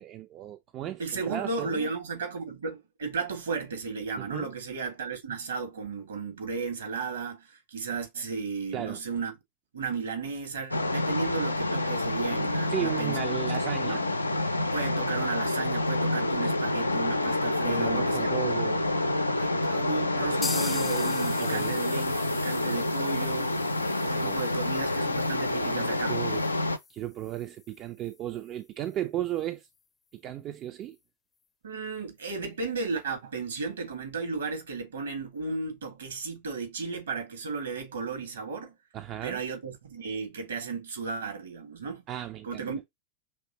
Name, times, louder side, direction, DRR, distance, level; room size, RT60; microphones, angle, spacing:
voice 1, 0.0-1.9 4.2-4.5 8.7-9.0 12.7-14.0 17.6-18.8 21.4-21.8 24.2-24.5 25.5-26.4 26.9-29.7 30.2-31.0 38.9-39.4 42.1-42.7, right 12 dB, 35° right, 0.5 m, -35 dB
voice 2, 1.0-9.3 9.7-13.2 13.8-14.0 14.7-18.3 19.4-23.6 24.0-26.2 31.6-38.7 39.2-42.0 42.4-42.8, right 4 dB, 65° right, 1.7 m, -34 dB
sound 1, 10.7-26.8, left 2 dB, 85° left, 0.5 m, -28 dB
sound 2, 20.4-28.1 28.4-28.5 28.9-29.0 29.4-29.5, left 5 dB, 20° left, 0.6 m, -42 dB
5.9 x 3.2 x 2.8 m
figure-of-eight pair, 90°, 0 cm